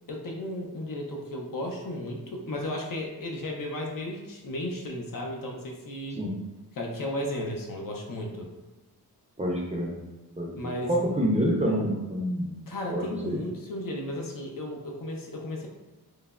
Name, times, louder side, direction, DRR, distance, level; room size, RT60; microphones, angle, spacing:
voice 1, 0.1-6.2 6.8-8.5 10.5-10.9 12.7-15.7, left 1 dB, 55° left, 0 dB, 0.6 m, -34 dB
voice 2, 9.4-9.9 10.4-12.5 12.9-13.4, equal, 20° right, -3 dB, 0.5 m, -27 dB
3.2 x 2.1 x 2.3 m, 1.1 s
cardioid pair, 80°, 40 cm